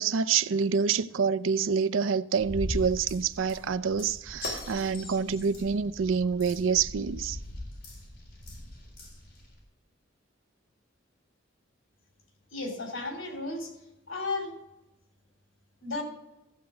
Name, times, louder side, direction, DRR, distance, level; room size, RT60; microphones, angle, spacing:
voice 1, 0.0-7.4, right 6 dB, 80° right, 0.5 m, -27 dB
sound 1, 2.4-9.6, left 1 dB, 55° left, 3.7 m, -40 dB
voice 2, 12.5-13.7 14.1-14.5 15.8-16.0, left 3 dB, 85° left, 3.2 m, -33 dB
14.5 x 8.0 x 3.8 m
head